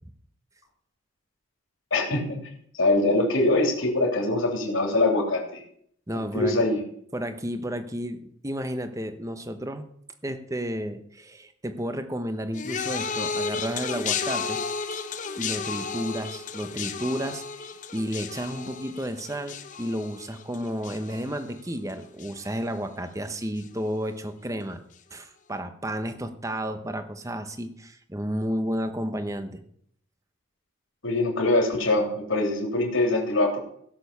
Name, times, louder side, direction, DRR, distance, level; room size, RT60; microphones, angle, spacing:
voice 1, 1.9-2.4 2.7-5.6 6.1-6.8 31.0-33.6, left 2 dB, 75° left, 0 dB, 3.3 m, -23 dB
voice 2, 6.1-6.6 7.1-9.8 10.2-14.6 14.9-15.0 15.3-24.8 25.1-29.6, equal, 15° right, 8 dB, 1.0 m, -32 dB
sound 1, 12.5-21.9 22.2-22.7 23.6-23.7, left 5 dB, 35° left, 0.8 m, -33 dB
16.0 x 7.0 x 6.9 m, 0.65 s
head